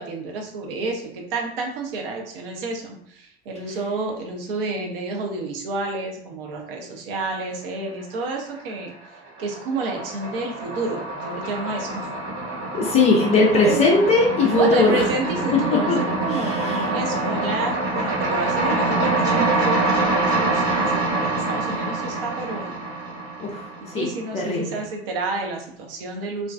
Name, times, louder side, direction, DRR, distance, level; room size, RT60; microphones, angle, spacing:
voice 1, 0.0-12.1 13.6-13.9 14.6-22.8 23.8-26.5, right 3 dB, 55° right, 1 dB, 0.7 m, -30 dB
sound 1, 8.0-8.7 9.0-24.2, right 2 dB, 80° right, 1.1 m, -25 dB
voice 2, 12.7-15.0 15.9-16.8 23.4-23.7 23.9-24.1 24.3-24.7, left 3 dB, 20° left, -1 dB, 0.3 m, -19 dB
2.5 x 2.2 x 2.2 m, 0.65 s
figure-of-eight pair, 75°, 33 cm